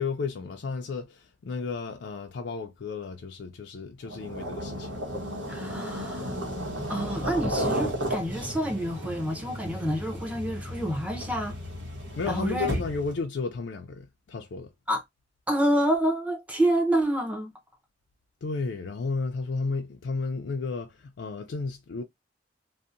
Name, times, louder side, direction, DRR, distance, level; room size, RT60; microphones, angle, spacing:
voice 1, 0.0-4.9 12.2-14.7 18.4-22.0, left 4 dB, 65° left, 0.4 m, -33 dB
sound 1, 4.0-13.2, equal, 80° right, 1.1 m, -33 dB
voice 2, 5.5-6.3 6.9-11.6 12.3-12.8 14.9-15.0 15.5-17.5, right 1 dB, 5° right, 0.6 m, -28 dB
2.7 x 2.1 x 2.4 m
head